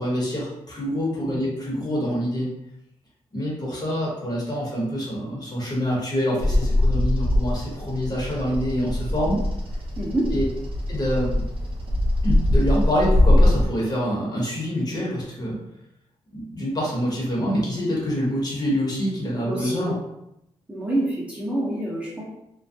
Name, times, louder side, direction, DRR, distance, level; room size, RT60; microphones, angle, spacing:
voice 1, 0.0-2.5 3.3-9.4 10.3-10.4 10.9-11.4 12.2-15.6 16.3-19.9, equal, 35° left, -5 dB, 1.0 m, -26 dB
Bird vocalization bird call bird song, 6.4-13.7, left 1 dB, 50° right, 0.5 m, -22 dB
voice 2, 10.0-10.3 19.5-19.9 20.7-22.2, right 1 dB, 10° right, -6 dB, 0.7 m, -27 dB
2.3 x 2.0 x 2.7 m, 0.84 s
cardioid pair, 70°, 12 cm